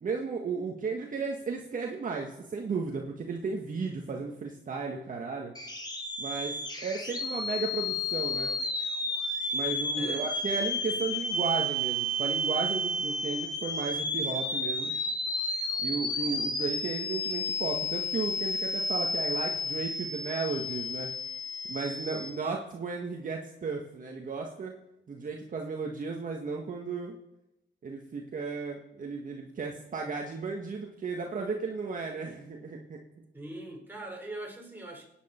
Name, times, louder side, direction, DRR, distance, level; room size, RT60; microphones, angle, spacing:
voice 1, 0.0-5.5 6.2-8.5 9.5-14.9 15.8-21.1 21.7-24.7 25.1-27.1 27.8-33.0, right 4 dB, 40° right, 1.6 m, -34 dB
sound 1, 5.5-22.3, left 1 dB, 20° left, 1.9 m, -32 dB
voice 2, 9.9-10.3 33.3-35.1, right 1 dB, 10° right, 4.3 m, -41 dB
25.0 x 9.4 x 4.5 m
cardioid pair, 90°, 20 cm